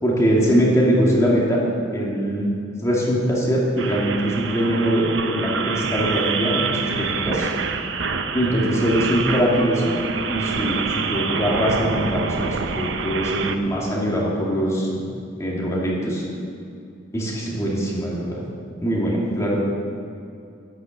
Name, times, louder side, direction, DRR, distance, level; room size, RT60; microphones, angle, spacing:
voice 1, 0.0-1.6 1.9-2.5 2.8-7.5 8.3-10.0 10.3-15.1 15.4-16.2 17.1-18.4 18.8-19.6, equal, 15° left, -5 dB, 2.6 m, -22 dB
sound 1, 3.8-13.6, right 5 dB, 70° right, 0.8 m, -27 dB
11.5 x 10.5 x 8.0 m, 2.5 s
head